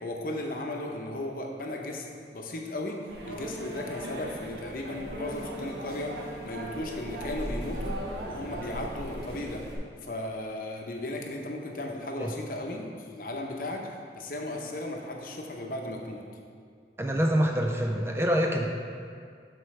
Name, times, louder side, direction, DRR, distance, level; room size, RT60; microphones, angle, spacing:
voice 1, 0.0-3.0 3.3-6.2 6.4-8.0 8.3-9.6 10.0-16.2, left 1 dB, 50° left, 1 dB, 0.8 m, -36 dB
sound 1, 3.1-9.8, equal, 70° right, 1.2 m, -38 dB
voice 2, 17.0-18.7, equal, 15° right, 2 dB, 0.4 m, -25 dB
12.0 x 4.5 x 3.2 m, 2.2 s
head